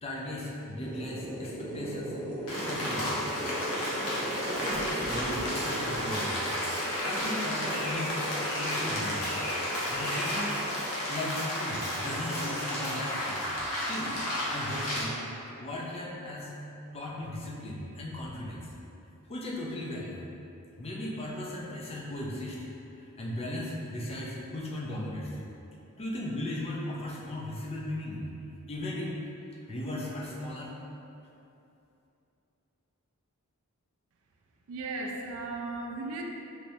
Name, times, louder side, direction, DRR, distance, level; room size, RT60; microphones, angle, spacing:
voice 1, 0.0-2.2 2.5-3.3 4.4-6.4 7.0-8.2 8.6-9.3 9.9-10.7 11.1-14.2 14.5-15.2 15.6-16.5 16.9-18.7 19.3-20.2 20.8-22.6 23.2-25.3 26.0-28.2 28.7-29.2 29.7-30.8, left 1 dB, 30° left, -4 dB, 0.4 m, -37 dB
sound 1, 0.8-10.9, right 1 dB, 40° right, 0.9 m, -38 dB
Rain, 2.5-15.0, equal, 75° left, 0.9 m, -32 dB
voice 2, 34.7-36.2, right 3 dB, 70° right, 1 dB, 0.3 m, -36 dB
3.2 x 2.9 x 2.6 m, 2.8 s
head